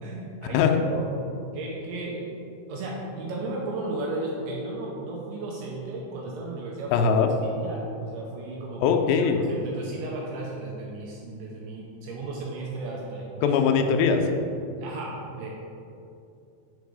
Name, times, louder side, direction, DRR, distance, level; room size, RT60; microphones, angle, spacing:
voice 1, 0.0-1.1 1.5-2.3 2.7-6.9 7.4-13.6 14.8-15.5, right 2 dB, 80° right, -3 dB, 2.2 m, -35 dB
voice 2, 6.9-7.3 8.8-9.4 13.4-14.2, left 6 dB, 85° left, 5 dB, 2.3 m, -21 dB
5.1 x 4.7 x 4.8 m, 2.6 s
omnidirectional pair, 4.0 m